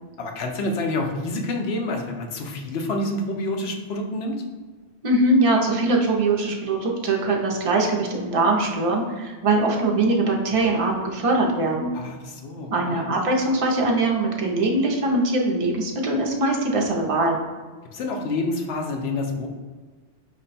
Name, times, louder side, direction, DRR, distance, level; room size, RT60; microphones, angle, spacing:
voice 1, 0.2-4.4 11.9-13.1 17.9-19.5, left 2 dB, 70° left, 2 dB, 0.9 m, -28 dB
voice 2, 5.0-11.9 12.7-17.4, right 2 dB, 35° right, -1 dB, 0.6 m, -22 dB
5.1 x 2.2 x 4.0 m, 1.4 s
omnidirectional pair, 1.2 m